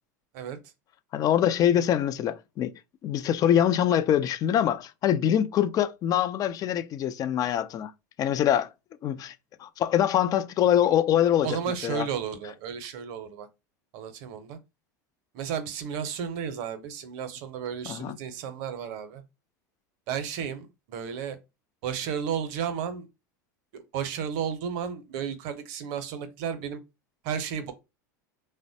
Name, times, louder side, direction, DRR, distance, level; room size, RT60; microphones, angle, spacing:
voice 1, 1.1-2.7 3.0-7.9 8.2-8.7 9.0-9.3 9.6-11.6 11.8-12.1 17.9-18.2, left 10 dB, 40° left, 0.4 m, -24 dB
voice 2, 11.4-13.5 13.9-14.6 15.3-19.2 20.1-21.4 21.8-23.1 23.7-26.8 27.2-27.7, right 7 dB, 60° right, 0.6 m, -33 dB
3.1 x 2.1 x 2.7 m
hypercardioid pair, 90°, 10 cm